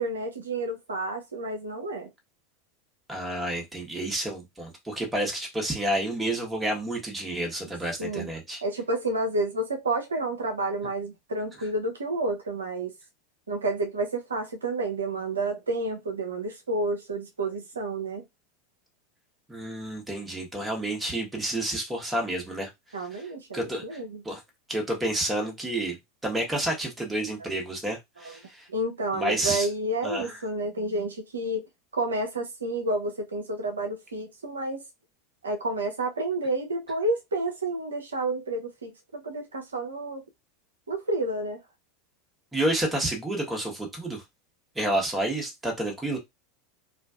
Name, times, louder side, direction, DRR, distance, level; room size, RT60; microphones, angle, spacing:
voice 1, 0.0-2.1 8.0-8.3 8.6-12.9 13.5-18.2 22.9-24.2 28.2-28.4 28.7-31.6 31.9-34.8 35.4-40.2 40.9-41.6, right 2 dB, 80° right, 0.5 m, -30 dB
voice 2, 3.1-8.6 19.5-22.7 23.1-23.2 23.5-24.0 24.2-24.4 24.7-26.0 26.2-28.7 29.1-29.7 30.0-30.4 42.5-44.2 44.7-46.2, right 1 dB, 10° right, 1.0 m, -30 dB
2.5 x 2.2 x 2.3 m
figure-of-eight pair, 85°, 0 cm